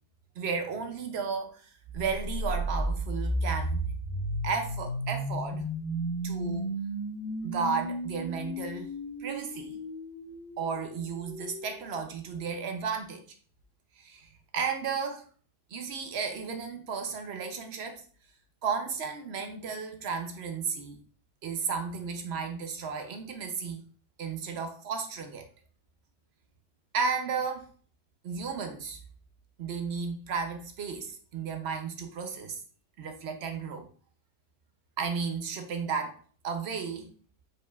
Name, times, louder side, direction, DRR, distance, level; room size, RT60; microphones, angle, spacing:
voice 1, 0.4-3.8 4.4-5.6 6.2-6.7 7.4-8.9 9.2-9.8 10.6-13.2 14.0-15.3 15.7-18.0 18.6-21.0 21.4-23.8 24.2-25.4 26.9-27.7 28.2-29.0 29.6-32.6 33.0-33.9 35.0-36.2 36.4-37.1, right 5 dB, 65° right, 5 dB, 0.6 m, -33 dB
sound 1, 2.1-12.0, equal, 80° left, 0.4 m, -34 dB
4.9 x 4.6 x 2.3 m, 0.41 s
omnidirectional pair, 1.8 m